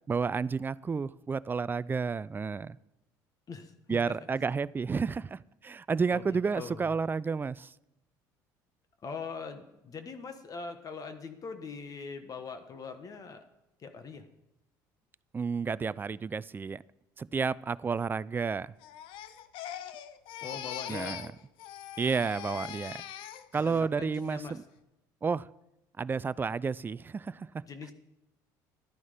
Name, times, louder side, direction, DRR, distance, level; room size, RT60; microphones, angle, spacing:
voice 1, 0.1-2.8 3.9-7.7 15.3-16.8 17.2-18.7 20.9-21.3 22.0-23.0 23.5-24.6 25.2-25.5 26.0-27.6, right 5 dB, 20° right, 0.4 m, -31 dB
voice 2, 3.5-4.1 6.1-6.9 9.0-13.4 13.8-14.2 20.4-21.2 23.5-24.6 27.7-27.9, left 5 dB, 40° left, 1.3 m, -42 dB
Crying sobbing, 18.8-21.3 21.6-23.8 24.2-24.6, left 11 dB, 70° left, 0.7 m, -42 dB
12.0 x 9.6 x 5.1 m
supercardioid pair, 80°, 9 cm